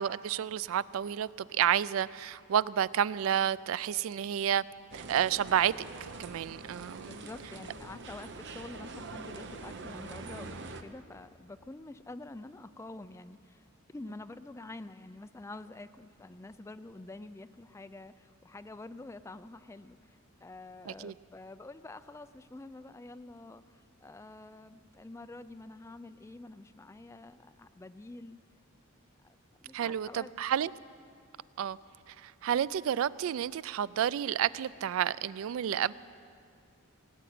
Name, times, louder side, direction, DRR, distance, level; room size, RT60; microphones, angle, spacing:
voice 1, 0.0-4.6 4.9-5.7 6.0-7.2 20.9-21.1 29.7-30.7 31.6-31.8 32.1-35.9, right 9 dB, 70° right, 19 dB, 0.3 m, -30 dB
sound 1, 4.9-10.8, right 3 dB, 55° right, 0.8 m, -44 dB
voice 2, 7.1-28.4 29.2-30.3, left 2 dB, 15° left, 12 dB, 0.3 m, -47 dB
18.5 x 7.8 x 9.2 m, 2.3 s
head